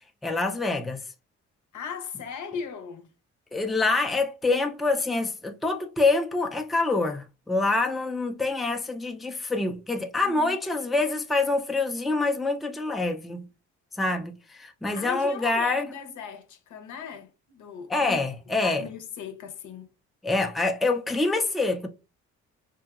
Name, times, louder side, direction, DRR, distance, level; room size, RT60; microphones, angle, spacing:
voice 1, 0.2-1.0 3.5-13.5 14.0-15.9 17.9-18.9 20.2-21.9, left 3 dB, ahead, 0.4 m, -26 dB
voice 2, 1.7-3.1 10.2-10.6 14.9-18.2 18.6-19.9, left 6 dB, 75° left, 0.7 m, -38 dB
2.9 x 2.7 x 2.3 m
cardioid pair, 90°, 30 cm